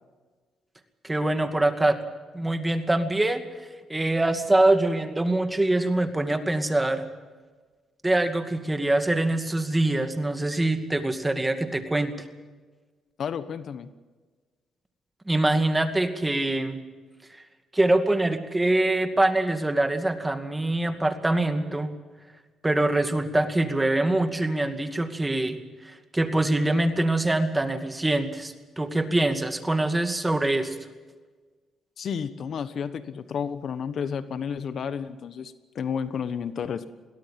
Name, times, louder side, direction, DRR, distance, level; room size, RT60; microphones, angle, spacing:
voice 1, 1.0-2.0 2.3-3.4 3.9-7.1 8.0-12.1 15.3-16.8 17.7-21.9 22.6-25.6 25.8-30.7, right 2 dB, 15° right, 8 dB, 2.2 m, -24 dB
voice 2, 13.2-13.9 32.0-36.9, left 7 dB, 60° left, 13 dB, 1.2 m, -31 dB
22.0 x 17.0 x 7.7 m, 1.4 s
cardioid pair, 90°, 0 cm